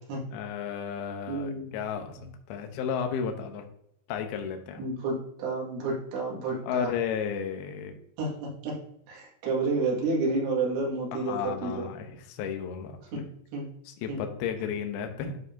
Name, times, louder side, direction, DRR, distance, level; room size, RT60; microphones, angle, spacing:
voice 1, 0.2-3.6 4.1-4.9 6.6-7.9 11.1-13.2 13.9-15.4, left 7 dB, 75° left, 5 dB, 2.4 m, -33 dB
voice 2, 1.3-1.7 4.8-6.9 8.2-8.8 9.1-11.9 13.1-13.2 13.5-13.6 14.1-14.2, right 3 dB, 80° right, -3 dB, 4.3 m, -30 dB
11.5 x 4.8 x 2.7 m, 0.74 s
omnidirectional pair, 5.4 m